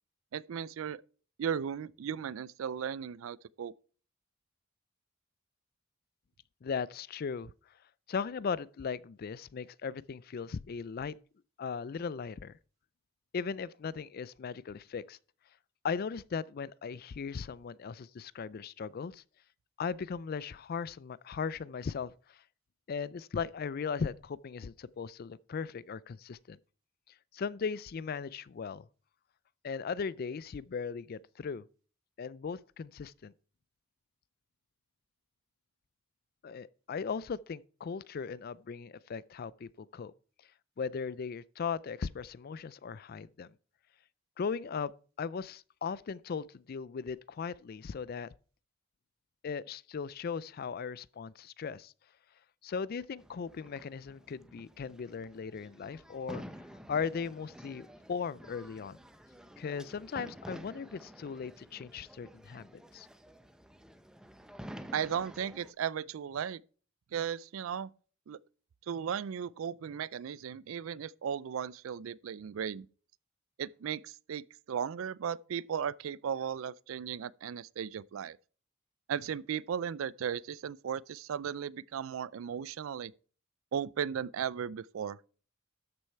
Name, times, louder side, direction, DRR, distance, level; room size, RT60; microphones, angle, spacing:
voice 1, 0.3-1.0 1.4-3.7 64.9-66.6 67.1-67.9 68.3-68.4 68.9-72.9 73.6-78.4 79.1-83.1 83.7-85.2, right 8 dB, 80° right, 0.4 m, -36 dB
voice 2, 6.6-7.5 8.1-11.1 11.6-12.6 13.3-15.2 15.8-19.2 19.8-22.4 22.9-26.6 27.3-28.9 29.6-31.7 32.2-33.3 36.4-40.1 40.8-43.5 44.4-44.9 45.2-48.3 49.4-51.9 52.6-56.4 56.9-59.0 59.6-63.1, left 6 dB, 50° left, 0.4 m, -38 dB
sound 1, 53.2-65.7, equal, 5° right, 0.6 m, -50 dB
13.0 x 6.4 x 4.5 m
head